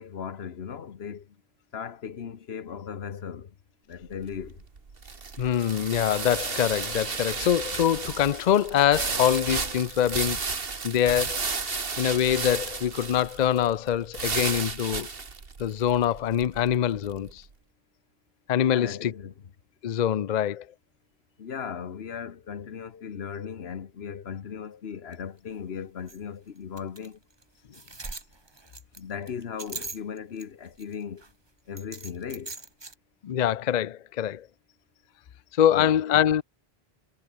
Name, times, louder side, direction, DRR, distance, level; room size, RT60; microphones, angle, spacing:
voice 1, 0.0-1.4 1.7-3.6 3.9-4.7 18.6-19.3 21.4-27.2 29.0-31.3 31.7-32.5 35.7-36.0, left 7 dB, 80° left, 1.3 m, -37 dB
sound 1, 4.0-17.3, right 4 dB, 65° right, 1.9 m, -33 dB
voice 2, 5.4-10.4 10.8-11.5 12.0-15.1 15.6-17.4 18.5-19.1 19.8-20.7 33.2-34.5 35.5-36.4, left 10 dB, 50° left, 0.6 m, -24 dB
sound 2, 25.1-25.2 25.5-25.6 26.1-26.2 26.8-27.1 27.4-27.5 27.7-30.4 30.8-31.3 31.8-32.9, right 3 dB, 25° right, 1.3 m, -40 dB
omnidirectional pair, 1.0 m